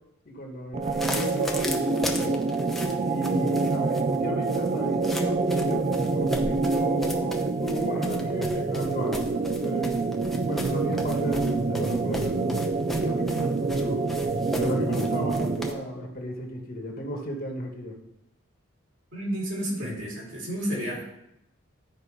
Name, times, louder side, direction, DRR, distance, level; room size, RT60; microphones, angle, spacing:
voice 1, 0.2-2.4 3.1-10.0 10.5-14.0 14.5-18.0, equal, 45° left, 1 dB, 1.5 m, -34 dB
sound 1, 0.7-15.9, right 3 dB, 30° right, 0.4 m, -26 dB
sound 2, 0.8-15.7, left 1 dB, ahead, 0.7 m, -38 dB
voice 2, 19.1-21.0, equal, 65° right, -5 dB, 3.8 m, -31 dB
12.0 x 4.7 x 4.8 m, 0.83 s
head